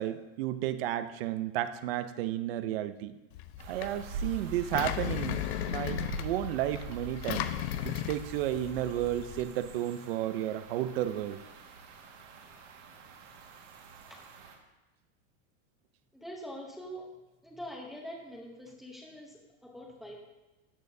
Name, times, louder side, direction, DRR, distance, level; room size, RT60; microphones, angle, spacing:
voice 1, 0.0-3.2 3.7-7.5 7.8-11.4, right 12 dB, 55° right, 12 dB, 0.6 m, -32 dB
Engine, 3.3-9.4, left 12 dB, 60° left, 0.6 m, -36 dB
sound 1, 3.6-14.6, right 4 dB, 75° right, 1.9 m, -45 dB
voice 2, 16.1-17.0 17.4-20.2, equal, ahead, -2 dB, 0.8 m, -44 dB
13.5 x 8.6 x 2.7 m, 1.1 s
supercardioid pair, 175°, 37 cm